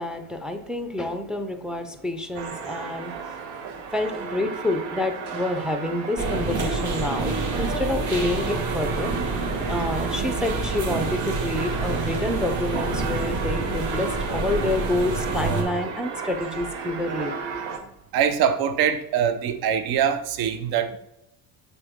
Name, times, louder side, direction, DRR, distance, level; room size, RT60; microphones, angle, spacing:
voice 1, 0.0-3.1 3.9-17.4, left 2 dB, ahead, 7 dB, 0.4 m, -28 dB
sound 1, 2.3-17.8, right 6 dB, 80° right, 1.3 m, -34 dB
sound 2, 6.2-15.6, right 3 dB, 45° right, 1.8 m, -28 dB
voice 2, 18.1-21.0, right 8 dB, 60° right, 9 dB, 0.8 m, -23 dB
6.9 x 4.9 x 3.5 m, 0.83 s
cardioid pair, 145°, 41 cm